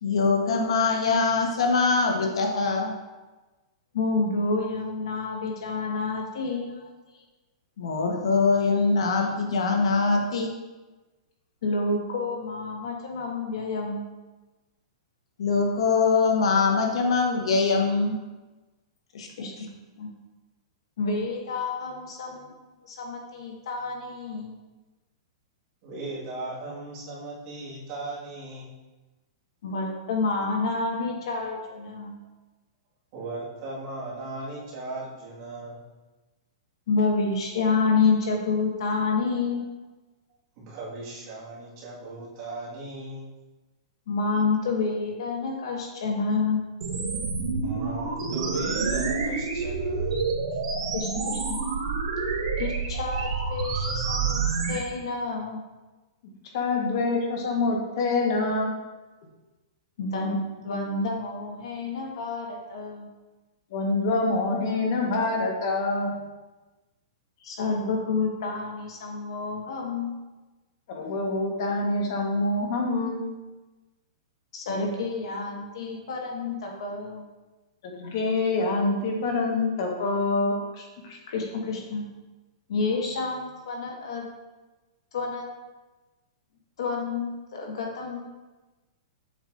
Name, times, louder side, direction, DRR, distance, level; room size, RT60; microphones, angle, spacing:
voice 1, 0.0-2.9 7.8-10.5 15.4-18.2 19.1-19.3, left 4 dB, 80° left, 2 dB, 1.1 m, -23 dB
voice 2, 3.9-6.8 11.6-14.1 19.4-19.7 20.0-20.1 21.0-22.5 22.8-24.6 29.6-32.2 36.9-39.6 44.1-46.6 50.9-51.6 52.6-54.4 54.7-55.6 60.0-60.4 60.6-63.1 67.4-70.1 74.5-77.3 81.3-82.0 82.7-84.2 85.1-85.5 86.8-88.2, left 4 dB, 65° left, -1 dB, 1.5 m, -28 dB
voice 3, 25.8-28.7 33.1-35.8 40.6-43.3 47.6-50.1, right 2 dB, 35° right, -6 dB, 1.7 m, -37 dB
sound 1, 46.8-54.8, right 4 dB, 80° right, 1.3 m, -28 dB
voice 4, 56.5-58.7 63.7-66.2 70.9-73.2 78.0-81.2, left 2 dB, 45° left, 0 dB, 1.2 m, -26 dB
7.2 x 5.3 x 2.5 m, 1.2 s
hypercardioid pair, 170°, 3 cm